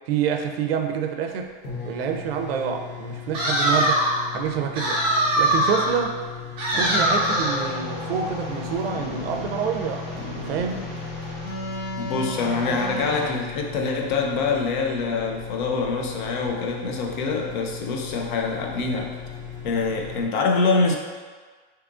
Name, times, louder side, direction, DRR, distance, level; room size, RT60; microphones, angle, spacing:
voice 1, 0.1-1.5 1.8-4.0 4.3-5.1 5.4-6.2 6.8-10.8, right 7 dB, 80° right, 5 dB, 0.5 m, -27 dB
sound 1, 1.3-1.4 1.6-20.2, left 8 dB, 85° left, 1.3 m, -38 dB
sound 2, 3.3-4.2 4.8-6.0 6.6-7.7, right 1 dB, 15° right, 0.6 m, -22 dB
sound 3, 6.7-13.2, equal, 25° left, 0.9 m, -34 dB
voice 2, 12.0-19.2 19.6-21.0, left 4 dB, 55° left, 2 dB, 0.5 m, -25 dB
2.8 x 2.5 x 3.5 m, 1.5 s
supercardioid pair, 170°, 29 cm